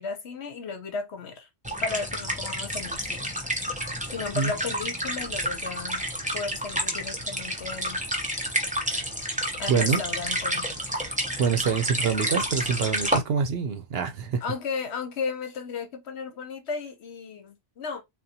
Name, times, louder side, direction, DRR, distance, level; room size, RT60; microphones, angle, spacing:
voice 1, 0.0-1.5 1.8-3.3 4.1-6.0 6.3-8.0 9.6-10.7 14.4-18.0, left 5 dB, 70° left, 1.1 m, -34 dB
sound 1, 1.6-13.2, equal, 10° right, 0.6 m, -30 dB
voice 2, 9.7-10.0 11.4-14.4, right 6 dB, 65° right, 0.8 m, -25 dB
3.8 x 2.3 x 2.7 m
omnidirectional pair, 1.2 m